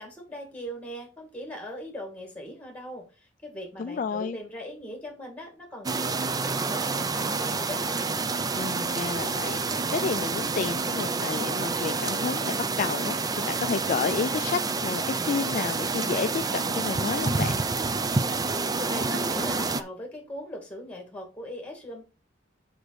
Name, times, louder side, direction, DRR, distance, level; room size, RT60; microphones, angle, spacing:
voice 1, 0.0-8.0 18.8-22.1, equal, 5° left, 2.3 m, -40 dB
voice 2, 3.8-4.4 8.5-17.6, left 5 dB, 45° left, 0.3 m, -31 dB
sound 1, 5.8-19.8, right 4 dB, 20° right, 0.4 m, -28 dB
6.3 x 5.0 x 4.8 m
head